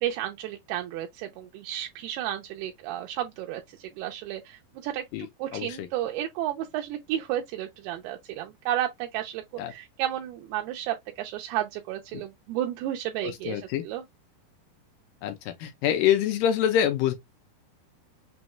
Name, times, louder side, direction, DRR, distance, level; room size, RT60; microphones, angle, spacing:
voice 1, 0.0-5.0 5.4-9.4 9.7-14.0, right 12 dB, 85° right, 2.6 m, -32 dB
voice 2, 5.5-5.9 9.6-9.7 12.1-12.2 13.2-13.8 15.2-15.3 15.6-17.1, left 10 dB, 80° left, 2.1 m, -25 dB
6.2 x 2.2 x 2.9 m
omnidirectional pair, 4.6 m